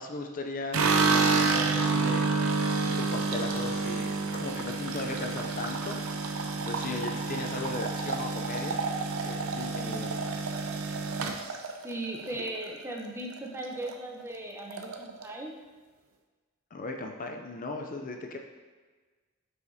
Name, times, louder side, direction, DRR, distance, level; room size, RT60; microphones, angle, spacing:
voice 1, 0.0-2.3 2.9-8.8 9.2-10.1 16.7-18.4, left 2 dB, 40° left, 3 dB, 0.5 m, -37 dB
sound 1, 0.7-13.0 13.3-13.9 14.2-14.3 14.6-15.3, right 4 dB, 90° right, 0.6 m, -29 dB
voice 2, 11.8-15.6, right 1 dB, 15° right, 0 dB, 0.7 m, -37 dB
7.8 x 4.8 x 2.7 m, 1.4 s
head